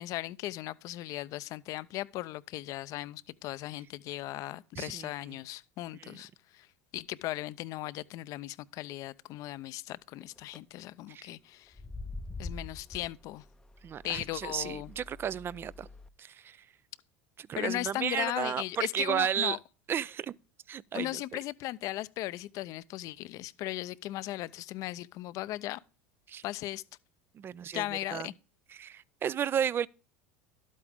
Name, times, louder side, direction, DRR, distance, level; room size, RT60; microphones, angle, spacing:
voice 1, 0.0-6.7 6.9-11.7 12.4-13.4 14.0-14.9 17.6-19.6 20.9-25.8 26.4-26.8 27.7-28.3, left 16 dB, 55° left, 0.6 m, -37 dB
voice 2, 4.8-5.4 6.0-6.2 11.1-11.3 13.8-15.9 16.2-16.7 17.4-19.6 19.9-20.4 20.7-21.2 26.3-26.4 27.3-28.3 28.7-29.9, right 9 dB, 35° right, 0.4 m, -33 dB
sound 1, 10.2-10.6 11.7-16.1, left 3 dB, 10° left, 0.6 m, -45 dB
12.0 x 8.4 x 3.5 m
hypercardioid pair, 90°, 7 cm